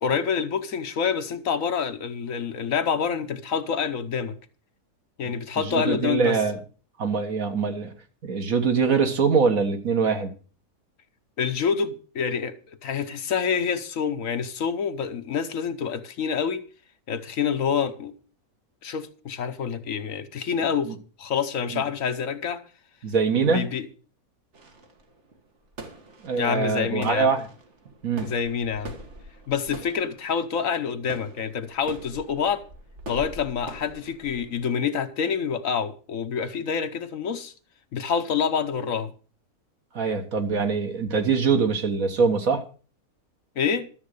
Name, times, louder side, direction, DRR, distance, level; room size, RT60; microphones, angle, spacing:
voice 1, 0.0-4.4 5.2-6.4 11.4-12.6 12.8-16.6 17.1-18.1 18.8-22.6 23.4-23.8 26.4-27.4 28.2-29.0 29.5-32.6 33.1-37.5 37.9-39.1 43.5-43.9, left 6 dB, 65° left, 1.3 m, -27 dB
voice 2, 5.6-6.6 7.0-7.9 8.2-10.3 20.9-21.0 21.7-21.8 23.0-23.7 26.2-27.5 28.0-28.3 39.9-42.6, right 5 dB, 65° right, 1.9 m, -23 dB
sound 1, 24.5-34.7, right 2 dB, 50° right, 2.0 m, -44 dB
13.0 x 7.4 x 6.6 m
omnidirectional pair, 1.6 m